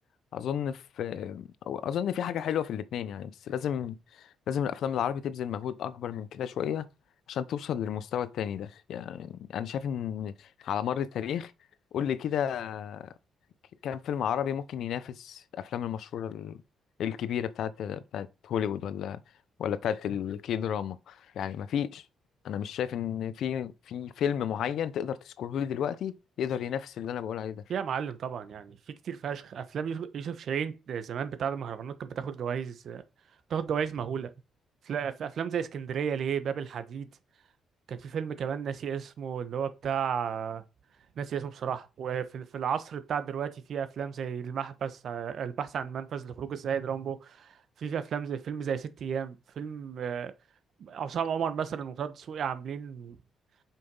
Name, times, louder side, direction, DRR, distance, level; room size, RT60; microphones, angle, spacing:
voice 1, 0.3-6.9 7.3-11.5 11.9-13.1 13.8-16.6 17.0-19.2 19.6-22.0 22.4-27.6, left 9 dB, 70° left, 0.8 m, -32 dB
voice 2, 27.7-28.8 29.0-33.0 33.5-34.3 34.8-37.1 37.9-40.6 41.2-50.3 50.8-53.2, right 7 dB, 60° right, 1.2 m, -33 dB
7.9 x 5.9 x 5.5 m
cardioid pair, 125°, 0 cm